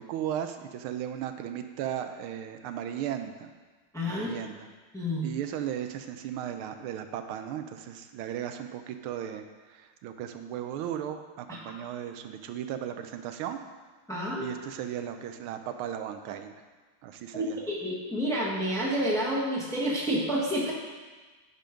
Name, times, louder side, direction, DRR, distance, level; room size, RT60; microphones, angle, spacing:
voice 1, 0.0-3.5 4.0-4.7 5.2-13.6 14.4-16.5 17.0-17.6, right 10 dB, 85° right, 8 dB, 1.5 m, -36 dB
voice 2, 3.9-4.3 4.9-5.3 11.5-11.6 14.1-14.5 17.3-20.7, equal, ahead, -5 dB, 1.1 m, -29 dB
9.1 x 5.2 x 5.1 m, 1.3 s
omnidirectional pair, 2.3 m